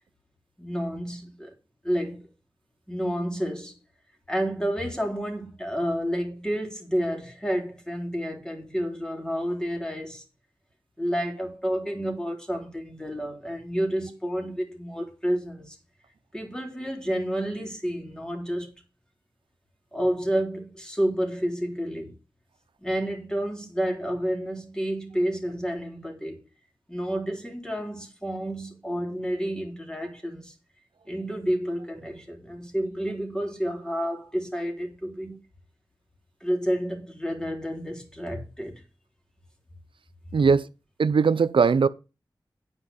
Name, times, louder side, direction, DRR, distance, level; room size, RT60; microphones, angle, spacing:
voice 1, 0.6-1.5 1.8-2.3 2.9-3.8 4.3-10.2 11.0-15.8 16.3-18.7 19.9-22.1 22.8-26.4 26.9-30.5 31.1-35.4 36.4-38.7, equal, 10° left, 3.8 m, -30 dB
voice 2, 40.3-40.7 41.0-41.9, right 5 dB, 90° right, 0.6 m, -20 dB
10.0 x 4.9 x 7.2 m
wide cardioid pair, 55°, 8 cm